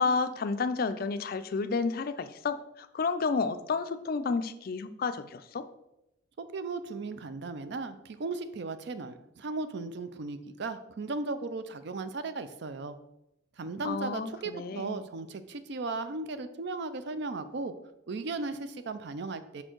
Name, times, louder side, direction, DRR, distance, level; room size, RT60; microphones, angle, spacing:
voice 1, 0.0-5.7 13.8-15.1, left 4 dB, 45° left, 11 dB, 0.4 m, -31 dB
voice 2, 6.4-13.0 13.6-17.7 18.1-19.6, right 3 dB, 55° right, 11 dB, 0.4 m, -36 dB
5.5 x 4.4 x 4.5 m, 0.88 s
head